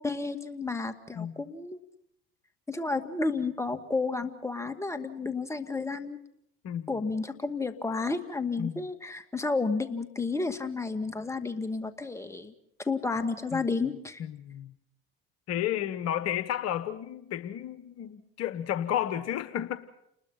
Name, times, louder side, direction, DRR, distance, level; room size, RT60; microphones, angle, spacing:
voice 1, 0.0-1.8 2.7-6.2 6.9-12.5 12.8-14.2, left 3 dB, 10° left, 2.2 m, -31 dB
voice 2, 14.2-14.7 15.5-19.8, left 11 dB, 55° left, 1.2 m, -32 dB
29.5 x 20.5 x 5.8 m
hypercardioid pair, 65°, 31 cm